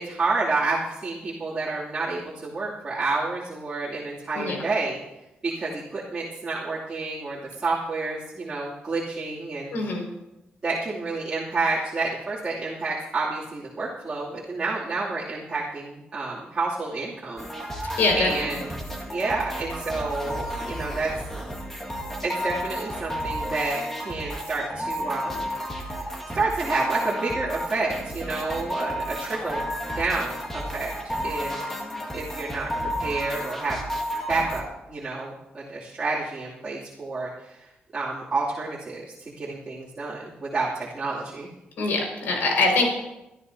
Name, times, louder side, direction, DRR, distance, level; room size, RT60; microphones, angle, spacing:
voice 1, 0.0-5.0 5.4-9.8 10.6-18.7 19.1-21.1 22.2-26.0 26.3-29.7 29.9-30.9 31.2-31.5 32.1-32.7 33.0-33.8 34.3-41.5, right 3 dB, 25° right, -8 dB, 2.8 m, -29 dB
voice 2, 9.7-10.0 18.0-18.5 41.8-42.9, left 3 dB, 85° left, 1 dB, 5.5 m, -23 dB
sound 1, 17.4-34.6, equal, 10° left, 1.9 m, -32 dB
24.5 x 13.0 x 2.8 m, 0.93 s
wide cardioid pair, 180°, 3 cm